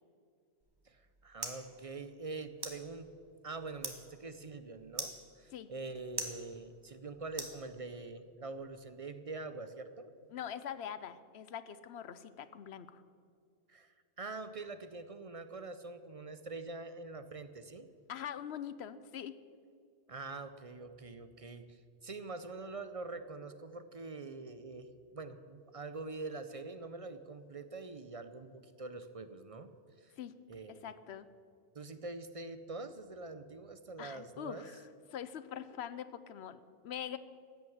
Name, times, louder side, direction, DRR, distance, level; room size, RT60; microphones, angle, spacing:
sound 1, 0.6-8.2, right 1 dB, 20° right, 1.5 m, -47 dB
voice 1, 0.9-3.1 3.4-10.1 13.7-17.9 20.1-24.9 25.1-29.7 30.0-30.1 30.5-30.9 31.7-34.6, right 3 dB, 40° right, 11 dB, 0.6 m, -45 dB
voice 2, 10.3-13.0 18.1-19.3 30.2-30.3 30.8-31.3 34.0-34.8 35.1-37.2, left 9 dB, 75° left, 14 dB, 0.9 m, -43 dB
14.5 x 9.7 x 7.2 m, 2.3 s
omnidirectional pair, 1.1 m